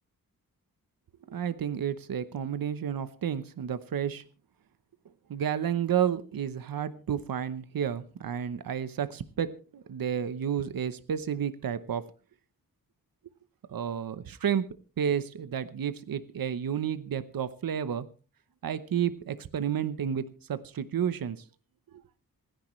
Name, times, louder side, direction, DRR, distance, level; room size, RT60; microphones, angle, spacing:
voice 1, 1.3-4.2 5.3-12.0 13.7-14.6 15.0-18.0 18.6-21.4, right 8 dB, 75° right, 13 dB, 0.9 m, -31 dB
26.5 x 10.5 x 3.2 m, 0.36 s
wide cardioid pair, 115°, 35 cm